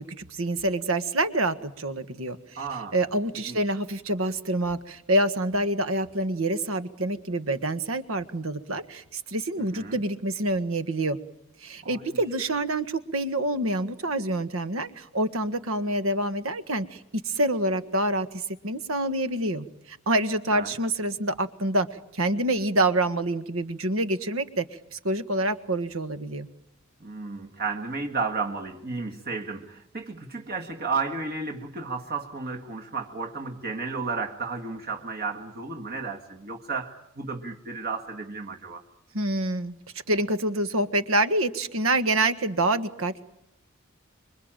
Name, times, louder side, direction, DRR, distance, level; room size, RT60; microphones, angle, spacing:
voice 1, 0.0-11.2 11.6-18.3 18.6-21.9 22.1-24.6 24.9-26.5 39.1-39.8 40.1-43.2, right 1 dB, 80° right, 12 dB, 1.7 m, -27 dB
voice 2, 2.6-2.9 3.5-3.6 9.6-10.0 11.8-12.1 20.5-20.7 27.0-38.8, right 4 dB, 45° right, 3 dB, 1.9 m, -33 dB
27.0 x 24.0 x 9.0 m, 0.79 s
head